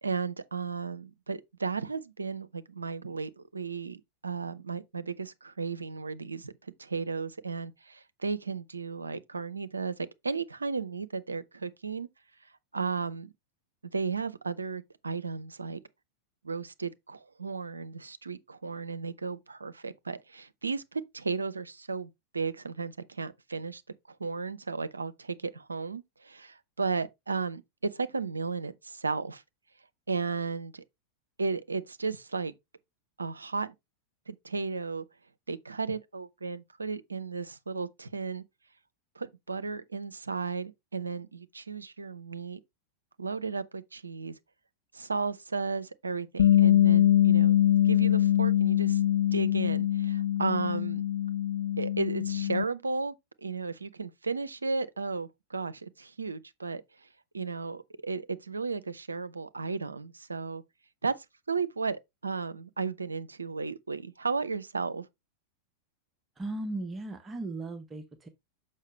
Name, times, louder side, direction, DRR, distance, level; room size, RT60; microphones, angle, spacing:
voice 1, 0.0-12.1 12.7-13.3 13.9-15.8 16.4-23.8 24.1-27.6 27.9-29.4 30.1-30.8 31.4-32.5 33.2-33.7 34.3-35.1 35.5-38.4 39.2-42.6 43.2-44.4 44.9-47.5 47.8-51.0 51.8-57.1 57.3-60.6 61.0-65.1, right 4 dB, 80° right, 0.5 m, -34 dB
Bass guitar, 46.4-52.6, left 12 dB, 65° left, 0.3 m, -23 dB
voice 2, 66.4-68.3, right 2 dB, 15° right, 0.9 m, -37 dB
6.4 x 5.5 x 3.2 m
figure-of-eight pair, 90°, 0 cm